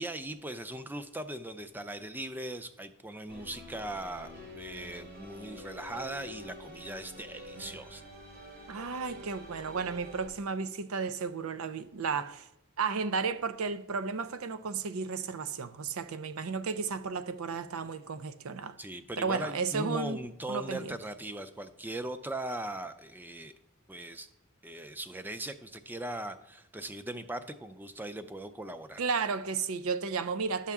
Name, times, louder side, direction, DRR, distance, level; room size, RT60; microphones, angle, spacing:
voice 1, 0.0-8.0 18.8-23.5 23.9-24.3 24.6-29.0, right 1 dB, 10° right, 0.4 m, -39 dB
sound 1, 3.3-10.3, left 1 dB, 50° right, 3.3 m, -47 dB
voice 2, 8.7-12.5 12.8-18.8 19.2-20.2 20.5-20.9 29.0-30.7, right 5 dB, 75° right, 0.5 m, -33 dB
12.0 x 5.7 x 3.6 m
head